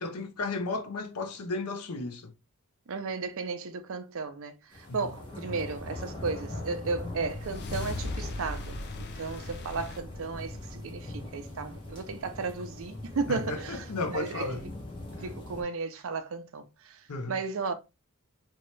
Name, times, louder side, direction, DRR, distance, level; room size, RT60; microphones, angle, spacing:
voice 1, 0.0-2.3 4.9-5.1 13.3-14.6 17.1-17.4, left 3 dB, 90° left, 0.6 m, -34 dB
voice 2, 2.9-14.7 15.1-17.7, right 4 dB, 65° right, 0.5 m, -35 dB
sound 1, 4.7-15.6, left 1 dB, 25° left, 1.1 m, -41 dB
sound 2, 7.1-11.5, left 2 dB, 50° left, 0.5 m, -39 dB
3.0 x 2.9 x 3.1 m
head